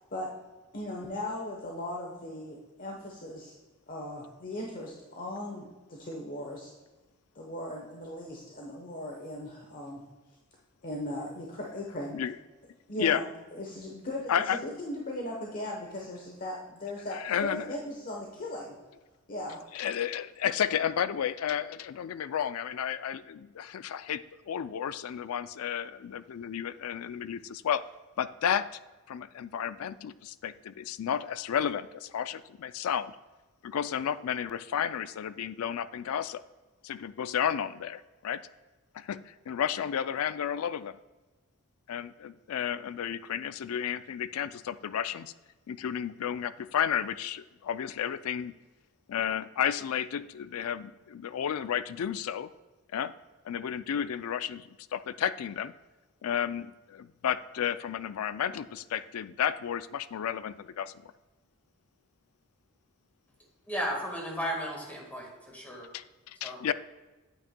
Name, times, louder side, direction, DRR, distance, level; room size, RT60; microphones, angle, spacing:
voice 1, 0.7-3.6 3.9-6.7 7.3-10.0 10.8-12.2 12.9-13.3 13.6-18.7 19.3-19.6, left 1 dB, 45° left, -1 dB, 1.0 m, -38 dB
voice 2, 14.3-14.6 17.1-17.7 19.7-27.8 28.2-28.7 29.1-33.2 33.6-36.4 36.8-38.4 38.9-41.0 41.9-45.3 45.7-48.5 49.1-52.5 52.9-53.1 53.5-55.7 56.2-61.1 65.9-66.7, left 9 dB, 85° left, 14 dB, 0.4 m, -32 dB
voice 3, 63.7-65.9 66.4-66.6, equal, 10° left, -1 dB, 1.6 m, -34 dB
9.0 x 8.6 x 2.2 m, 1.2 s
head